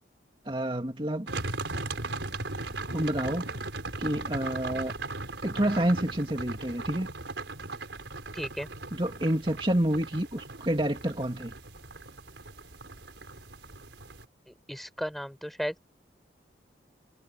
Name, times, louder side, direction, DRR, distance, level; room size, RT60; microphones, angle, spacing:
voice 1, 0.4-1.3 2.9-3.5 4.0-4.9 5.4-7.1 8.9-11.6, right 1 dB, 30° right, 2.5 m, -28 dB
sound 1, 1.3-14.3, right 3 dB, 85° right, 5.2 m, -38 dB
voice 2, 8.3-8.7 14.5-15.7, equal, ahead, 5.9 m, -35 dB
head